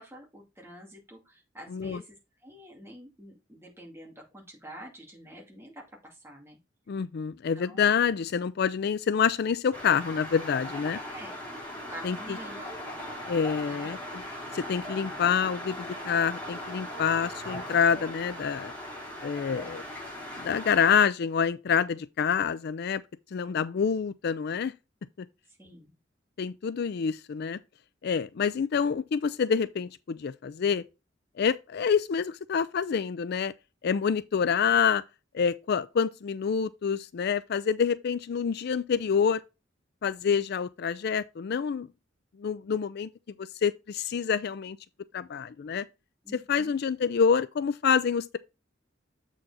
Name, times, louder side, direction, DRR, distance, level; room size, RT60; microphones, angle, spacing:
voice 1, 0.0-2.2 2.4-6.6 7.5-7.9 11.1-11.3 11.7-12.7 13.6-13.9 19.5-19.8 23.4-23.5 25.6-25.9 46.2-46.7, equal, 15° right, 2.3 m, -47 dB
voice 2, 6.9-11.0 12.0-12.2 13.3-14.2 14.5-18.7 19.2-19.8 20.4-23.0 23.3-24.7 26.4-27.6 28.0-30.8 31.4-33.5 33.8-35.0 35.3-39.4 40.0-41.9 42.4-43.1 43.6-44.8 45.1-45.8 46.3-48.4, left 6 dB, 55° left, 0.4 m, -27 dB
sound 1, 9.7-21.0, equal, 10° left, 5.2 m, -39 dB
7.6 x 4.6 x 4.1 m
head